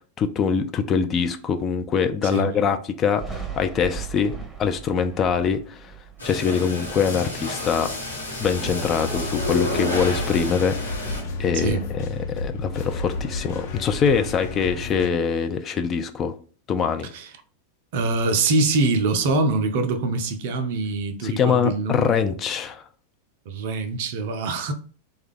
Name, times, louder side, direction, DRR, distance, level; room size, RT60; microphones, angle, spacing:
voice 1, 0.2-4.3 4.6-5.9 6.2-7.9 8.4-11.1 11.4-16.3 16.7-17.1 21.2-22.8, left 6 dB, 25° left, 0.3 m, -23 dB
voice 2, 2.2-2.5 11.5-11.8 17.1-17.3 17.9-22.1 23.5-24.7, right 3 dB, 50° right, 0.5 m, -24 dB
Thunder, 3.2-8.6 9.0-10.4 10.7-12.4, right 6 dB, 5° left, 0.8 m, -40 dB
sound 1, 6.2-11.2, left 2 dB, 85° left, 1.2 m, -30 dB
sound 2, 8.4-15.1, left 2 dB, 55° left, 0.8 m, -31 dB
3.3 x 2.3 x 3.4 m
figure-of-eight pair, 90°, 0 cm